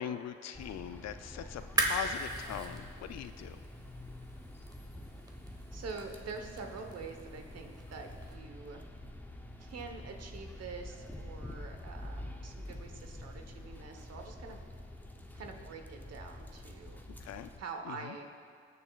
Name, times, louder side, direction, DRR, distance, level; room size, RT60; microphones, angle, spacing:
voice 1, 0.0-3.6 17.2-17.5 17.8-18.2, left 9 dB, 60° left, 10 dB, 0.4 m, -41 dB
sound 1, 0.5-17.6, left 1 dB, 5° left, 0.7 m, -47 dB
sound 2, 1.6-8.3, right 1 dB, 15° right, 1.1 m, -39 dB
voice 2, 5.7-8.8 9.6-14.6 15.3-17.0 17.6-18.3, right 4 dB, 55° right, 4 dB, 1.2 m, -45 dB
19.0 x 6.8 x 2.4 m, 2.1 s
cardioid pair, 90°, 30 cm